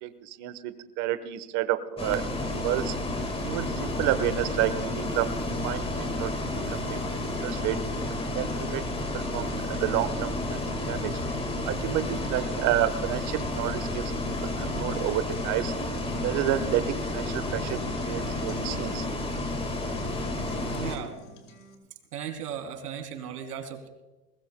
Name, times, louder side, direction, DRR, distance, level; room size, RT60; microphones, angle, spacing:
voice 1, 0.0-2.2 2.6-3.0 3.4-5.3 5.6-7.0 7.4-7.8 8.3-8.8 9.1-10.6 10.9-11.1 11.7-14.1 14.4-15.7 16.2-17.8 18.1-19.1, right 13 dB, 40° right, 11 dB, 1.2 m, -30 dB
Bus, 2.0-21.0, left 2 dB, 10° left, 1.9 m, -31 dB
sound 1, 5.8-21.8, equal, 30° left, 2.6 m, -49 dB
voice 2, 20.7-21.2 22.1-23.9, right 8 dB, 85° right, 5 dB, 3.1 m, -36 dB
20.5 x 20.0 x 2.2 m, 1.1 s
supercardioid pair, 140°, 45 cm